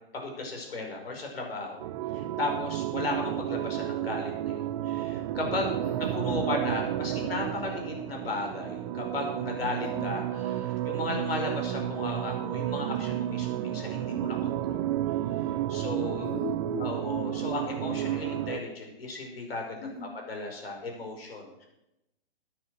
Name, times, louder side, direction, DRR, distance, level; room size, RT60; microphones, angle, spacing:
voice 1, 0.1-1.8 2.1-5.8 6.1-10.2 10.5-14.9 15.7-16.4 16.8-19.8 20.3-21.6, left 3 dB, 70° left, 2 dB, 5.4 m, -35 dB
sound 1, 1.8-18.6, right 12 dB, 30° right, 0.7 m, -31 dB
voice 2, 5.8-6.4 9.8-10.1 16.2-16.9 19.8-20.1, left 3 dB, 35° left, -7 dB, 5.7 m, -39 dB
13.0 x 9.8 x 6.4 m, 0.88 s
hypercardioid pair, 130°, 31 cm